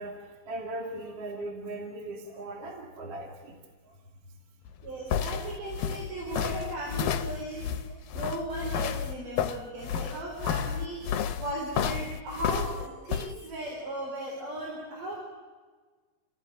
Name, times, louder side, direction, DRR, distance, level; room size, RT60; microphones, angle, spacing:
voice 1, 0.0-3.6 3.9-4.0 7.9-8.0, right 2 dB, 45° right, 1 dB, 3.3 m, -39 dB
sound 1, 4.7-13.3, left 8 dB, 90° left, 2.6 m, -31 dB
voice 2, 4.8-15.2, right 1 dB, 75° right, -2 dB, 6.1 m, -37 dB
28.0 x 17.0 x 9.1 m, 1.4 s
omnidirectional pair, 3.8 m